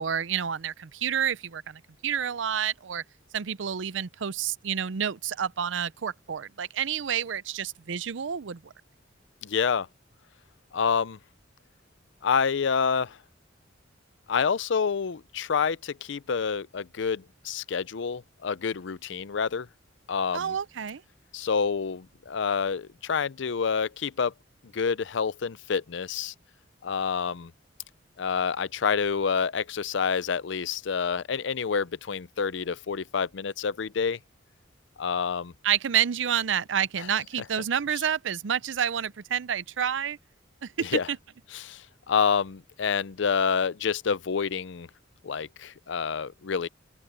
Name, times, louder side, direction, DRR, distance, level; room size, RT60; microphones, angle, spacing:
voice 1, 0.0-3.0 3.3-8.7 20.3-21.0 35.6-40.2 40.6-41.2, right 8 dB, 70° right, 0.5 m, -29 dB
voice 2, 9.4-9.9 10.7-11.2 12.2-13.2 14.3-19.7 20.1-20.6 21.3-24.3 24.7-26.3 26.8-27.5 28.2-34.2 35.0-35.5 37.0-37.1 40.8-41.1 41.5-44.9 45.2-46.7, left 6 dB, 70° left, 0.5 m, -28 dB
open air
head